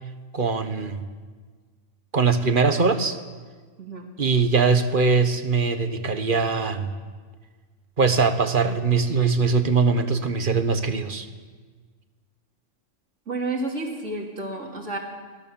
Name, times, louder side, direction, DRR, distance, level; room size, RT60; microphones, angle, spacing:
voice 1, 0.3-1.0 2.1-3.2 4.2-6.9 8.0-11.3, right 4 dB, 40° right, 9 dB, 1.4 m, -21 dB
voice 2, 13.3-15.0, right 2 dB, 60° right, 0 dB, 3.0 m, -30 dB
25.0 x 17.0 x 7.0 m, 1.5 s
omnidirectional pair, 1.4 m